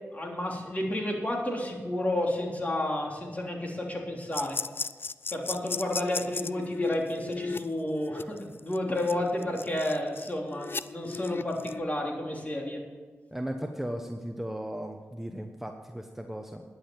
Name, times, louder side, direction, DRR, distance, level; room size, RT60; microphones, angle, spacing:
voice 1, 0.1-4.6 5.3-12.8, left 1 dB, 30° left, -1 dB, 3.3 m, -31 dB
sound 1, 4.3-11.8, left 4 dB, 50° left, 0.4 m, -36 dB
voice 2, 13.3-16.6, equal, 5° right, 4 dB, 1.1 m, -36 dB
11.5 x 7.9 x 7.3 m, 1.4 s
cardioid pair, 50°, 5 cm